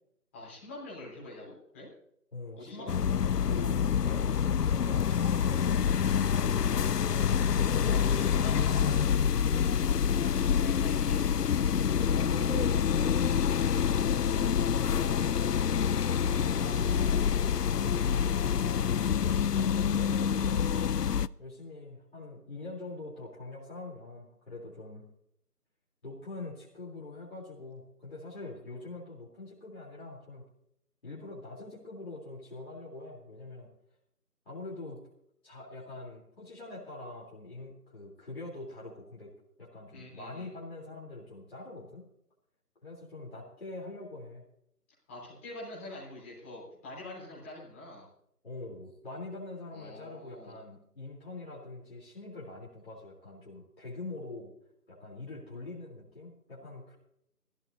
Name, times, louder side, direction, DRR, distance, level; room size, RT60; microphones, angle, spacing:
voice 1, 0.3-1.9 2.6-2.9 7.8-9.5 10.3-11.2 39.9-40.5 45.1-48.1 49.7-50.5, left 1 dB, 10° left, -7 dB, 3.7 m, -45 dB
voice 2, 2.3-3.0 3.4-7.4 11.7-15.3 16.2-20.7 21.4-25.1 26.0-30.5 31.0-33.7 34.5-35.1 35.4-39.3 39.6-42.1 42.8-44.4 48.4-54.5 54.9-57.0, left 2 dB, 40° left, -5 dB, 3.7 m, -44 dB
sound 1, 2.9-21.3, left 8 dB, 80° left, 0.6 m, -27 dB
20.5 x 15.5 x 2.8 m, 0.73 s
figure-of-eight pair, 170°, 47 cm